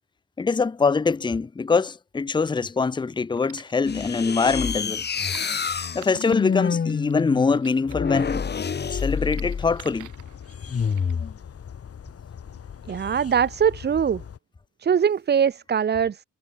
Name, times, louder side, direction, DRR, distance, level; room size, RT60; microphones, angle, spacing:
voice 1, 0.4-5.0 5.9-8.5 8.9-10.1, left 4 dB, 15° left, 0.6 m, -23 dB
sound 1, 2.6-11.1, right 14 dB, 85° right, 4.6 m, -49 dB
sound 2, 3.8-9.8 10.7-11.3, left 6 dB, 35° left, 1.5 m, -27 dB
sound 3, 9.1-14.4, left 8 dB, 50° left, 3.6 m, -41 dB
voice 2, 12.9-14.2 14.8-16.2, right 7 dB, 35° right, 0.7 m, -22 dB
cardioid pair, 90°, 30 cm